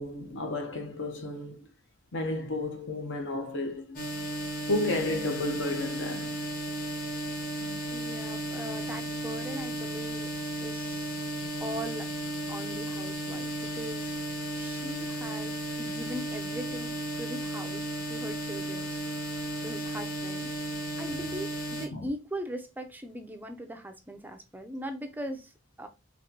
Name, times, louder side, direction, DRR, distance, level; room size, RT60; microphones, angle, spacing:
voice 1, 0.0-1.7 2.1-4.0 4.7-6.3 7.6-7.8 21.1-21.2 21.9-22.1, left 2 dB, 65° left, 0.8 m, -32 dB
sound 1, 3.9-21.9, right 1 dB, 45° left, 1.4 m, -34 dB
voice 2, 7.9-10.3 10.6-11.2 11.6-12.1 12.5-14.2 14.5-19.0 19.6-20.5 21.0-25.5 25.8-25.9, right 1 dB, 10° right, 0.4 m, -40 dB
4.1 x 2.9 x 2.8 m
head